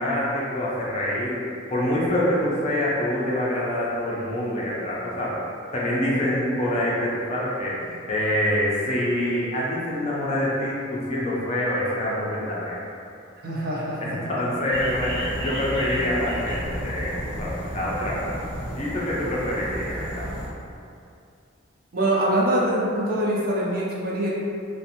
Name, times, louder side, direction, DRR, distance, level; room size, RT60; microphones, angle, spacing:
voice 1, 0.0-1.4 1.7-5.4 5.7-12.8 14.0-18.3 18.8-20.3, left 1 dB, 35° left, -6 dB, 0.4 m, -26 dB
voice 2, 13.4-14.0 21.9-24.3, right 1 dB, 45° right, -5 dB, 0.5 m, -24 dB
sound 1, 14.7-20.5, equal, 75° right, 1.0 m, -33 dB
2.5 x 2.1 x 2.7 m, 2.5 s
head